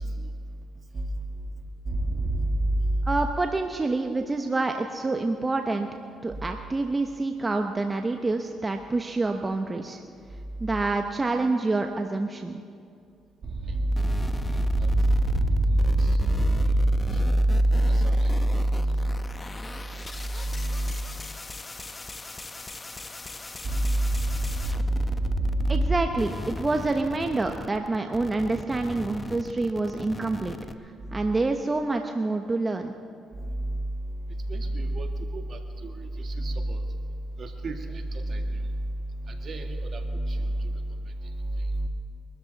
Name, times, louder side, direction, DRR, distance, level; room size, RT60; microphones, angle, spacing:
voice 1, 1.9-2.6 13.7-14.0 14.5-18.4 18.7-19.1 20.5-20.9 23.7-25.9 31.2-31.3 33.5-33.8 34.5-36.8 37.4-37.8 38.3-38.6 39.2-40.5 41.8-41.9, right 1 dB, 55° right, 4 dB, 1.8 m, -25 dB
voice 2, 3.0-5.9 6.2-10.0 10.6-12.5 25.7-30.6 30.8-32.9, right 3 dB, 25° right, 5 dB, 0.9 m, -27 dB
sound 1, 13.9-25.9 26.1-30.7, left 3 dB, 25° left, 0.9 m, -39 dB
23.0 x 13.0 x 4.1 m, 2.3 s
supercardioid pair, 75°, 0 cm